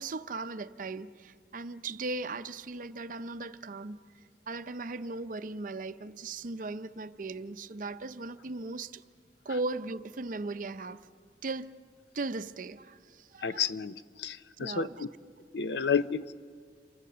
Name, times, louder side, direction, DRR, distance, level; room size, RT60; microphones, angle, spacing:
voice 1, 0.0-4.0 4.5-9.0 9.4-11.0 11.4-11.7 12.1-13.7 14.6-15.0 15.6-15.8, right 3 dB, 50° right, 0.6 m, -38 dB
voice 2, 13.4-15.1 15.5-16.3, left 6 dB, 75° left, 0.6 m, -31 dB
27.5 x 23.5 x 6.8 m
head